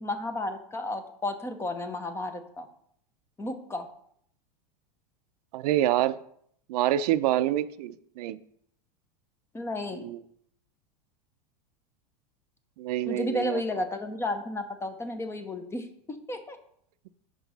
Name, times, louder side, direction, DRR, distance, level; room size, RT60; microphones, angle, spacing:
voice 1, 0.0-2.7 3.4-3.9 9.5-10.0 13.1-16.6, left 2 dB, 10° left, 8 dB, 0.6 m, -33 dB
voice 2, 5.5-6.2 6.7-8.4 10.0-10.2 12.8-13.6, right 13 dB, 70° right, 14 dB, 0.4 m, -26 dB
6.0 x 4.8 x 4.0 m, 0.68 s
supercardioid pair, 130°, 21 cm